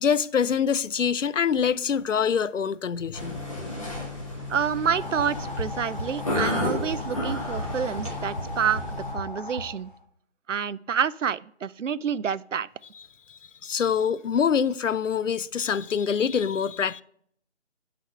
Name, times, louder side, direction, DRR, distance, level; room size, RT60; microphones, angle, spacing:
voice 1, 0.0-3.4 13.3-17.0, left 7 dB, 80° left, 0.5 m, -25 dB
sound 1, 3.1-9.1, left 1 dB, 25° left, 1.7 m, -32 dB
voice 2, 4.5-9.9 10.5-12.7, right 7 dB, 80° right, 0.5 m, -28 dB
sound 2, 4.9-10.0, left 1 dB, 45° left, 1.0 m, -36 dB
9.3 x 4.1 x 6.3 m
figure-of-eight pair, 175°, 37 cm